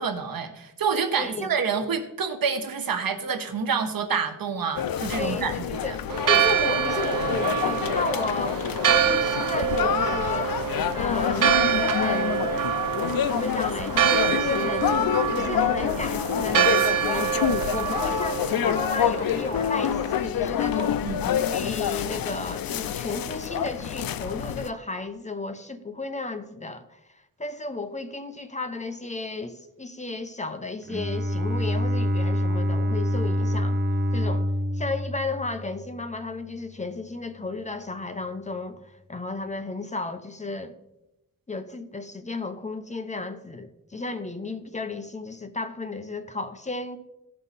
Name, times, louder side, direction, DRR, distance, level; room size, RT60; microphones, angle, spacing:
voice 1, 0.0-6.0 21.0-21.2, right 6 dB, 85° right, 1.1 m, -28 dB
voice 2, 1.2-1.6 5.2-5.9 6.3-8.6 8.9-10.5 10.9-12.5 13.3-15.0 15.3-17.3 17.7-21.1 21.5-27.0 27.4-33.8 34.1-34.5 34.7-40.8 41.5-47.0, left 3 dB, 20° left, 0.6 m, -33 dB
sound 1, 4.7-24.7, left 9 dB, 85° left, 0.5 m, -27 dB
Church bell, 6.1-20.2, right 10 dB, 70° right, 0.5 m, -26 dB
Bowed string instrument, 30.9-36.1, left 1 dB, 30° right, 1.0 m, -26 dB
16.0 x 5.5 x 4.1 m
wide cardioid pair, 170°, 34 cm